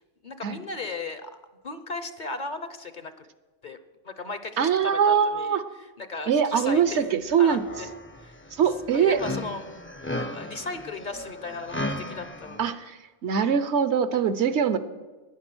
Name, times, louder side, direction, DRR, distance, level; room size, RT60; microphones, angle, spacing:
voice 1, 0.2-1.3 1.6-3.2 3.6-3.8 4.0-5.6 6.0-6.8 7.4-7.9 8.2-8.3 8.9-9.6 10.2-12.7, left 3 dB, 45° left, 11 dB, 0.8 m, -36 dB
voice 2, 4.6-5.6 6.3-7.6 8.6-9.2 12.6-14.8, right 7 dB, 70° right, 12 dB, 1.0 m, -23 dB
sound 1, 6.6-7.0 7.3-12.7, left 1 dB, 15° left, 0.4 m, -36 dB
15.0 x 10.5 x 6.2 m, 1.2 s
omnidirectional pair, 1.2 m